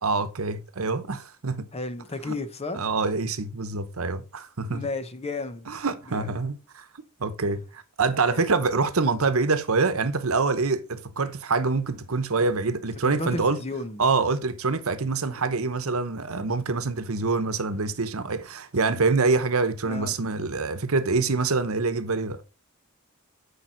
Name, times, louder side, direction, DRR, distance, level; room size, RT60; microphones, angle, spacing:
voice 1, 0.0-1.7 2.2-2.3 2.7-4.8 5.7-6.9 7.2-13.6 14.0-22.4, right 4 dB, 70° right, 0.9 m, -25 dB
voice 2, 1.7-2.8 4.7-5.7 6.1-6.3 8.2-8.5 13.0-14.0 19.9-20.1, left 2 dB, 30° left, 0.9 m, -33 dB
9.2 x 4.7 x 4.4 m
head